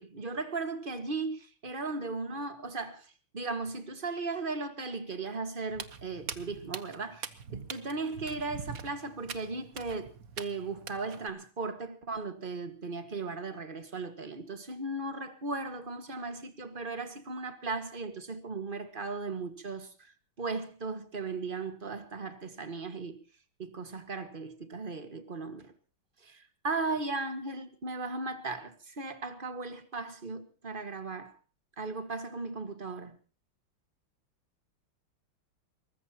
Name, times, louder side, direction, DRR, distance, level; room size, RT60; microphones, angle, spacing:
voice 1, 0.0-20.1 20.4-23.2 23.6-25.7 26.2-31.3 31.8-33.2, right 3 dB, 25° right, 1.8 m, -37 dB
Walk footsteps, 5.7-11.3, right 7 dB, 50° right, 1.4 m, -43 dB
23.0 x 20.5 x 2.9 m
omnidirectional pair, 2.2 m